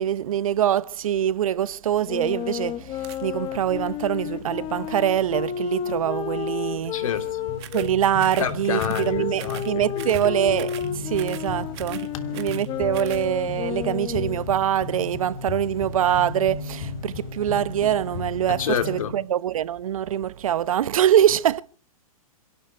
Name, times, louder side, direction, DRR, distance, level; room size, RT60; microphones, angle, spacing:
voice 1, 0.0-7.0 7.7-21.6, right 10 dB, 65° right, 1.0 m, -24 dB
sound 1, 1.9-19.1, left 4 dB, 45° left, 3.4 m, -36 dB
Wind instrument woodwind instrument, 2.0-7.9 8.7-14.4, left 10 dB, 25° left, 1.1 m, -32 dB
sound 2, 3.0-3.2 7.6-7.9 8.2-8.5 8.8-9.1 9.4-9.7 10.0-10.3 10.6-10.9 11.1-11.5 11.7-12.7 12.9-13.3, right 15 dB, 45° right, 1.9 m, -41 dB
voice 2, 6.9-7.4 8.4-9.6 10.0-10.1 18.6-19.1, left 8 dB, 65° left, 3.2 m, -28 dB
27.0 x 12.0 x 4.4 m
hypercardioid pair, 125°, 19 cm